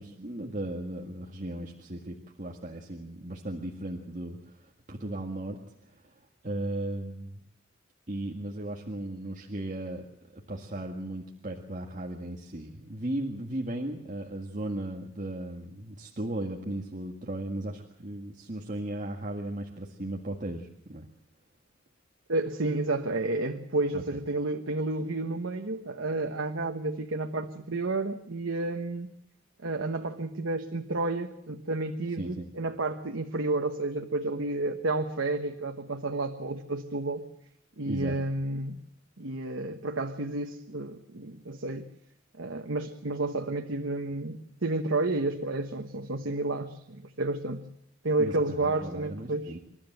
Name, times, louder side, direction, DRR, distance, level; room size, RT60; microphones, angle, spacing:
voice 1, 0.0-7.4 8.1-10.1 10.3-21.1 23.9-24.2 32.2-32.5 37.8-38.2 48.2-49.6, right 1 dB, 40° right, 1 dB, 1.8 m, -36 dB
voice 2, 22.3-29.1 29.6-37.3 37.8-38.8 39.2-41.9 42.4-47.6 48.0-49.6, right 2 dB, 80° right, 5 dB, 1.2 m, -31 dB
28.0 x 13.0 x 7.9 m, 0.78 s
head